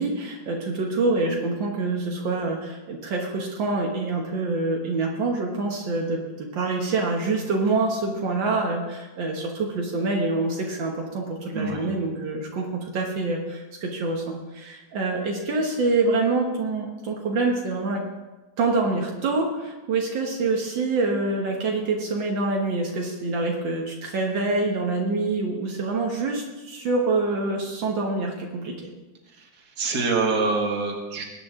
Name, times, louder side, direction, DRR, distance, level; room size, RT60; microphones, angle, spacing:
voice 1, 0.0-18.0 18.6-28.8, right 3 dB, 75° right, 0 dB, 2.0 m, -26 dB
voice 2, 11.5-12.0 29.4-29.5 29.8-31.2, right 3 dB, 55° right, 1 dB, 2.2 m, -25 dB
20.0 x 9.5 x 3.7 m, 1.2 s
omnidirectional pair, 2.0 m